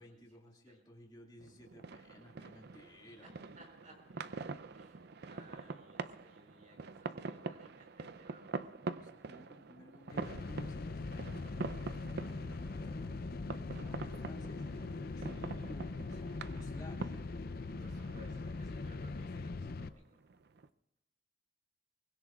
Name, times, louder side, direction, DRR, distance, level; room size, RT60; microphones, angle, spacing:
voice 1, 0.0-3.5 9.0-11.5 12.1-13.1 13.7-17.3 17.7-18.1, left 1 dB, 20° left, -1 dB, 2.1 m, -56 dB
sound 1, 1.4-20.7, right 4 dB, 60° right, 0.5 m, -46 dB
voice 2, 3.6-4.2 4.7-8.5 13.9-14.0 16.1-16.2 17.8-19.9, equal, 45° right, 2 dB, 4.4 m, -60 dB
sound 2, 10.1-19.9, left 3 dB, 55° left, 0.5 m, -41 dB
23.5 x 20.0 x 2.4 m, 0.93 s
head